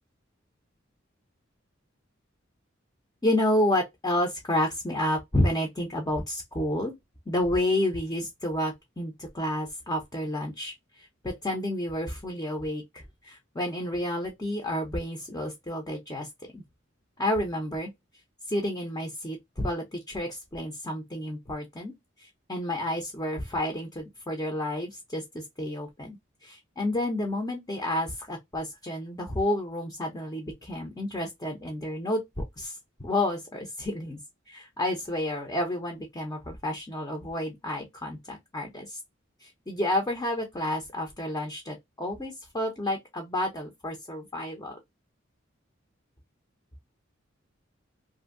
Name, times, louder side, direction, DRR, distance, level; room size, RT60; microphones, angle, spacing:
voice 1, 3.2-6.9 7.3-16.3 16.5-16.6 17.2-17.9 18.5-21.9 22.2-34.2 34.5-39.0 39.4-44.8, left 1 dB, 20° left, 0.6 m, -30 dB
2.7 x 2.6 x 2.5 m
head